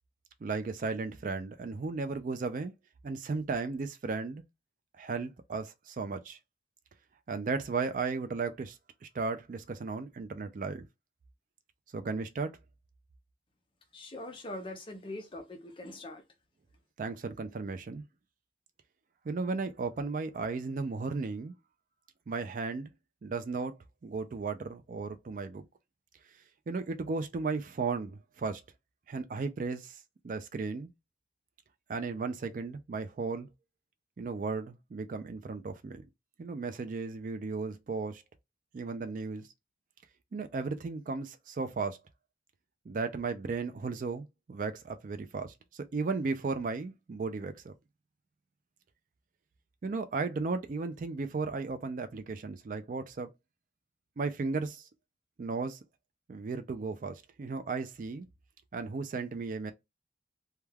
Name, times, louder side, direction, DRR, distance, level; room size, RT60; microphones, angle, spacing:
voice 1, 0.4-2.7 3.0-4.4 5.0-6.4 7.3-8.8 9.0-10.9 11.9-12.5 17.0-18.0 19.3-21.5 22.3-22.9 23.2-23.8 24.0-25.7 26.7-28.6 29.1-30.0 30.2-30.9 31.9-33.5 34.2-36.1 36.4-38.2 38.7-39.5 40.3-42.0 42.9-47.7 49.8-53.3 54.2-54.8 55.4-55.8 56.3-58.3 58.7-59.7, right 4 dB, 45° right, 0.3 m, -35 dB
voice 2, 13.9-16.2, left 1 dB, 25° left, 0.5 m, -42 dB
2.2 x 2.2 x 3.2 m
head